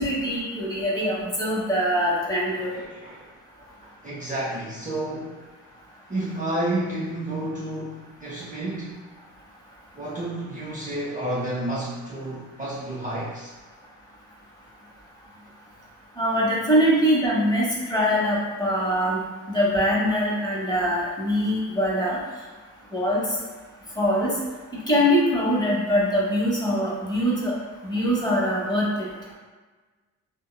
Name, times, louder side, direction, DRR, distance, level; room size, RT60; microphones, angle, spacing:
voice 1, 0.0-2.8 16.2-19.2 19.5-22.2 22.9-23.2 24.0-24.3 24.7-27.6 27.8-29.1, equal, 10° left, -5 dB, 0.9 m, -23 dB
voice 2, 2.5-3.3 3.8-5.4 6.1-9.0 10.0-13.5, right 1 dB, 20° right, -7 dB, 0.7 m, -31 dB
2.8 x 2.0 x 2.2 m, 1.3 s
supercardioid pair, 50°, 34 cm